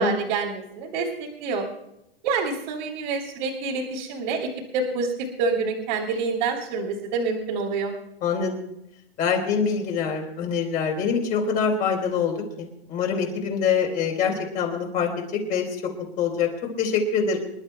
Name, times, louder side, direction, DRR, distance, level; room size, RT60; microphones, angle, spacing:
voice 1, 0.0-1.6 2.2-7.9, right 4 dB, 50° right, -4 dB, 3.0 m, -27 dB
voice 2, 8.2-8.5 9.2-15.6 16.2-16.5 16.8-17.5, left 6 dB, 25° left, 1 dB, 3.8 m, -25 dB
28.0 x 12.0 x 2.3 m, 0.83 s
hypercardioid pair, 155°, 32 cm